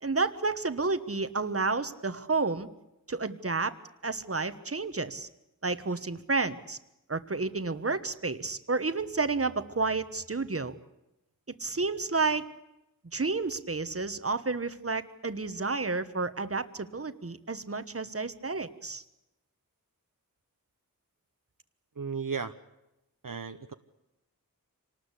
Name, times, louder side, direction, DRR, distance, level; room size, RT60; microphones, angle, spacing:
voice 1, 0.0-2.7 3.1-3.7 4.0-5.3 5.6-6.8 7.1-10.7 11.5-12.5 13.1-19.0, right 3 dB, 40° right, 12 dB, 1.2 m, -31 dB
voice 2, 21.9-22.6 23.2-23.7, right 5 dB, 65° right, 8 dB, 1.0 m, -35 dB
26.0 x 19.0 x 8.3 m, 0.92 s
wide cardioid pair, 55°, 35 cm